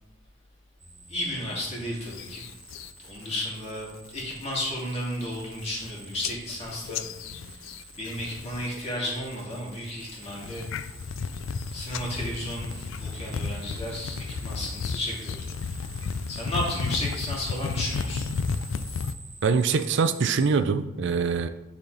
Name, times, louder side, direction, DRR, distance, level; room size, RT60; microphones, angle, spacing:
sound 1, 0.8-20.5, right 3 dB, 15° right, 1.0 m, -48 dB
voice 1, 1.1-2.4 3.0-7.7 8.0-10.7 11.7-15.8 16.3-18.3, left 1 dB, 35° left, -4 dB, 2.5 m, -33 dB
sound 2, 2.1-2.9 3.3-3.7 4.1-4.4 4.9-5.0 5.2-5.9 6.2-8.8 9.0-9.6 10.1-19.1, left 5 dB, 70° left, 0.4 m, -33 dB
voice 2, 19.4-21.5, right 5 dB, 65° right, 9 dB, 0.4 m, -23 dB
10.0 x 4.1 x 4.0 m, 0.96 s
head